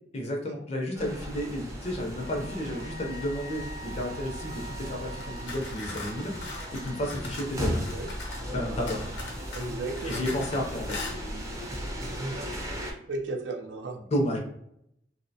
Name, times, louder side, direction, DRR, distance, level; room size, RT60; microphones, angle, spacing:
voice 1, 0.1-6.3 6.7-7.8 8.5-9.1 10.0-11.0 14.1-14.4, equal, 35° left, 1 dB, 0.4 m, -32 dB
sound 1, 0.9-12.9, equal, 20° right, 0.5 m, -36 dB
Wind instrument woodwind instrument, 2.1-7.1, right 1 dB, 40° right, 0.8 m, -46 dB
sound 2, 5.2-8.5 8.9-10.6 10.9-11.2, left 3 dB, 85° left, 0.7 m, -40 dB
voice 2, 9.5-10.2 12.2-12.5 13.1-14.0, right 2 dB, 80° right, 3 dB, 0.4 m, -34 dB
2.6 x 2.0 x 2.6 m, 0.75 s
head